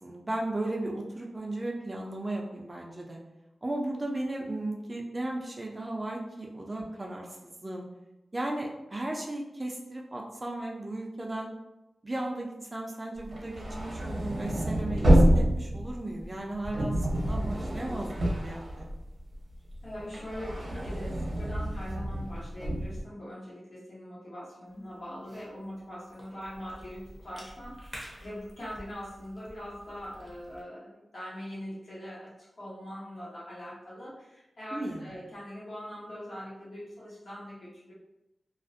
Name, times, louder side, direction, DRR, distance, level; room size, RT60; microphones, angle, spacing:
voice 1, 0.0-3.2 3.6-7.8 8.3-11.5 12.0-18.9 34.7-35.2, right 1 dB, 25° right, 0 dB, 0.4 m, -35 dB
sound 1, 13.2-19.3 19.7-23.0, right 1 dB, 65° right, 0.7 m, -27 dB
voice 2, 19.8-37.9, equal, 60° left, -9 dB, 1.1 m, -42 dB
Cough / Chewing mastication, 24.7-30.6, equal, 15° left, 0.7 m, -50 dB
2.4 x 2.0 x 2.5 m, 0.94 s
wide cardioid pair, 120°, 0 cm